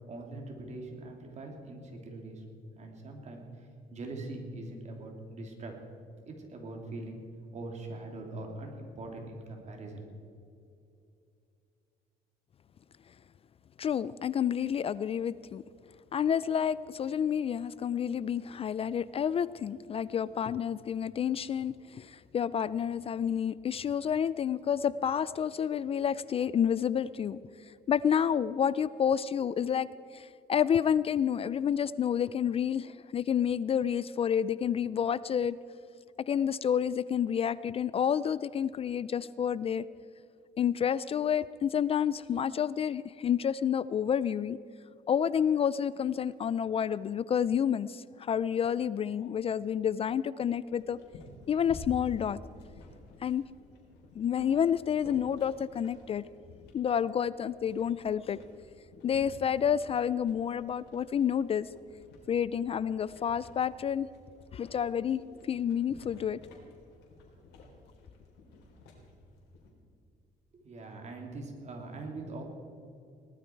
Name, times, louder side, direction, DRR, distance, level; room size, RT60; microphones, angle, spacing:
voice 1, 0.1-2.4 2.7-5.8 6.2-7.2 7.5-10.3 70.5-72.4, right 2 dB, 40° right, 2 dB, 3.0 m, -42 dB
voice 2, 13.8-15.6 16.1-27.4 27.9-35.6 36.2-39.9 40.6-44.6 45.1-51.0 51.5-52.4 53.2-53.4 54.2-56.2 56.7-58.4 59.0-61.7 62.3-64.1 64.5-65.2 65.5-66.4, left 8 dB, 35° left, 18 dB, 0.4 m, -29 dB
sound 1, 50.6-69.7, left 2 dB, 85° left, 3.8 m, -52 dB
18.5 x 12.5 x 4.6 m, 2.5 s
cardioid pair, 110°, 17 cm